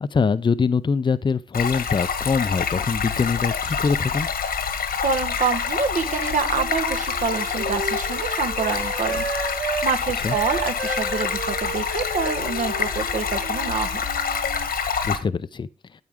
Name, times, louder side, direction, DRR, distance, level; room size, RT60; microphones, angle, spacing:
voice 1, 0.0-4.3 10.2-10.4 15.0-15.7, left 5 dB, 30° left, 0.5 m, -23 dB
Stream, 1.5-15.2, left 6 dB, 80° left, 1.4 m, -27 dB
voice 2, 5.0-9.2 9.5-14.0, right 5 dB, 60° right, 1.3 m, -26 dB
Wind instrument woodwind instrument, 6.0-9.9 10.3-14.6, right 4 dB, 85° right, 2.6 m, -33 dB
9.3 x 8.4 x 3.6 m
wide cardioid pair, 105°, 15 cm